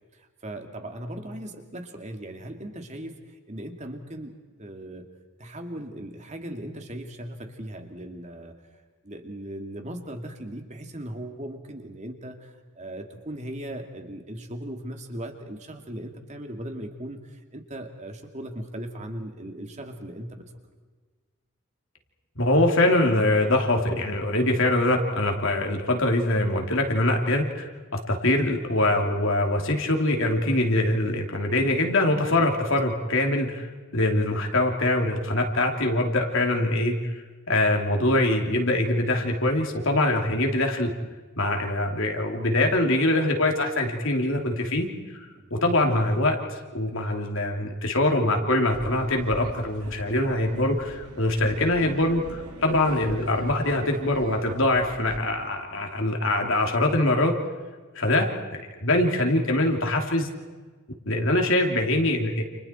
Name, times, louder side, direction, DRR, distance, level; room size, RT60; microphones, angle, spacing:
voice 1, 0.1-5.1 5.4-8.6 9.0-20.4 32.7-32.8 45.4-45.5 55.6-55.8, right 1 dB, 35° right, 4 dB, 2.7 m, -38 dB
voice 2, 22.4-27.7 28.1-33.7 33.9-37.0 37.5-40.9 41.4-44.9 45.5-57.3 57.9-58.3 58.8-60.3 61.0-62.4, left 1 dB, 60° left, 2 dB, 3.1 m, -23 dB
sound 1, 48.7-55.2, right 1 dB, 90° right, 2.6 m, -41 dB
30.0 x 29.0 x 4.5 m, 1.4 s
head